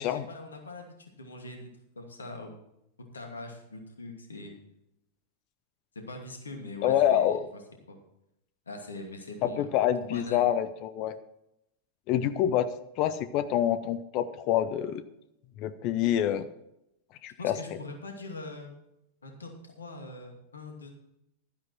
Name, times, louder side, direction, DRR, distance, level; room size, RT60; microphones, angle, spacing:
voice 1, 0.0-1.7 2.0-2.6 3.1-4.6 6.1-7.4 7.9-8.0 8.7-9.7 10.0-10.5 17.4-18.7 19.2-20.9, left 2 dB, 75° left, 3 dB, 2.5 m, -42 dB
voice 2, 6.8-7.4 9.4-11.1 12.1-12.7 13.0-15.0 15.6-16.5 17.2-17.6, left 11 dB, 40° left, 13 dB, 0.7 m, -26 dB
12.5 x 10.5 x 4.5 m, 0.84 s
figure-of-eight pair, 90°, 0 cm